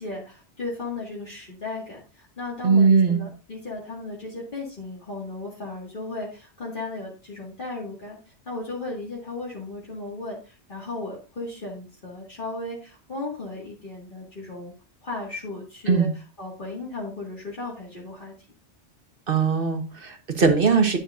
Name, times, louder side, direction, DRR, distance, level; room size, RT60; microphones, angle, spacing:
voice 1, 0.0-8.2 8.5-14.7 15.0-16.1 16.4-18.3, left 2 dB, 50° left, -5 dB, 2.2 m, -35 dB
voice 2, 2.6-3.2 15.9-16.1 19.3-21.0, right 5 dB, 55° right, 6 dB, 1.4 m, -20 dB
11.0 x 6.4 x 2.5 m, 0.34 s
omnidirectional pair, 1.1 m